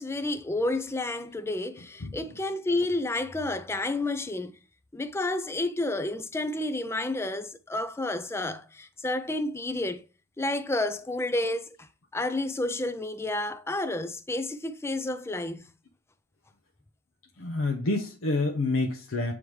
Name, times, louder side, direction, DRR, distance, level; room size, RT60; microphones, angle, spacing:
voice 1, 0.0-4.5 4.9-10.0 10.4-15.7, left 2 dB, 10° left, 0.4 m, -30 dB
voice 2, 17.4-19.3, left 2 dB, 75° left, 0.8 m, -28 dB
8.5 x 3.5 x 3.1 m
head